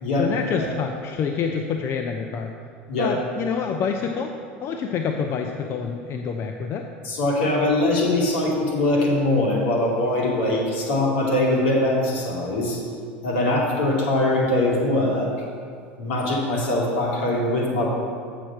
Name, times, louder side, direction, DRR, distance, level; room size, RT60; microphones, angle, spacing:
voice 1, 0.2-2.5 3.0-4.3 4.6-6.8, left 6 dB, 45° left, 4 dB, 0.6 m, -27 dB
voice 2, 7.0-12.8 13.2-15.3 16.0-17.9, left 1 dB, 75° left, -3 dB, 2.3 m, -22 dB
7.4 x 6.6 x 5.8 m, 2.3 s
hypercardioid pair, 90°, 6 cm